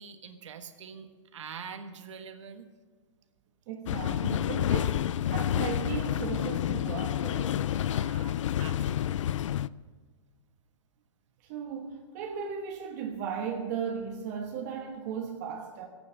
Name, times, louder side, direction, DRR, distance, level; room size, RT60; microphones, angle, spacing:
voice 1, 0.0-2.7 7.5-9.4, right 6 dB, 75° right, 7 dB, 1.5 m, -45 dB
voice 2, 3.7-7.6 11.5-15.9, right 7 dB, 35° right, 2 dB, 1.2 m, -36 dB
sound 1, 3.9-9.7, left 11 dB, 80° left, 0.4 m, -29 dB
15.0 x 8.8 x 6.7 m, 1.5 s
hypercardioid pair, 165°, 16 cm